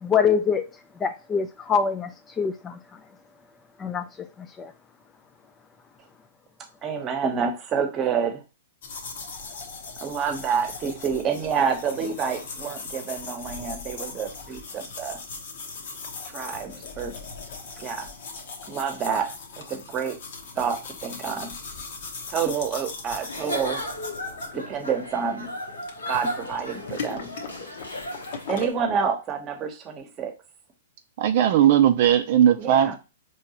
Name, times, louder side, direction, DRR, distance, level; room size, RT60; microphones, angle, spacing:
voice 1, 0.0-0.7 1.0-2.1 2.4-2.8 3.8-4.0 4.6-4.7, left 6 dB, 20° left, 0.4 m, -24 dB
voice 2, 6.8-8.4 10.0-15.2 16.3-17.1 17.8-18.1 18.7-20.2 20.6-21.5 22.3-23.8 24.5-25.5 26.1-27.3 28.5-30.3 32.6-33.0, right 6 dB, 25° right, 1.0 m, -28 dB
sound 1, 8.8-28.7, left 4 dB, 60° left, 1.0 m, -39 dB
Giggle / Chuckle chortle, 23.2-28.7, left 1 dB, 90° left, 1.6 m, -35 dB
voice 3, 31.2-33.0, right 10 dB, 55° right, 0.4 m, -18 dB
4.6 x 3.1 x 2.9 m
hypercardioid pair, 120°, 0 cm